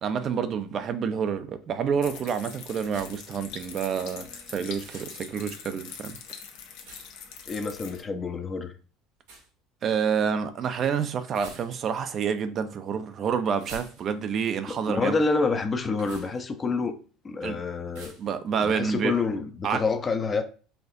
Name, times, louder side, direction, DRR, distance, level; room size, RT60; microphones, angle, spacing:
voice 1, 0.0-6.2 9.8-15.2 17.4-17.6 18.2-19.2 19.6-19.8, right 7 dB, 45° right, 0.4 m, -28 dB
sound 1, 2.0-8.0, left 7 dB, 75° left, 0.7 m, -43 dB
sound 2, 2.8-3.4 4.7-5.2 6.8-7.3 9.2-9.5 11.3-12.0 13.5-14.4 15.9-16.4 17.9-18.3, right 3 dB, 80° right, 1.4 m, -47 dB
voice 2, 7.5-8.7 14.7-17.0 17.2-18.1 18.6-20.4, left 4 dB, 30° left, 0.5 m, -27 dB
4.3 x 2.4 x 2.6 m
supercardioid pair, 95°, 0 cm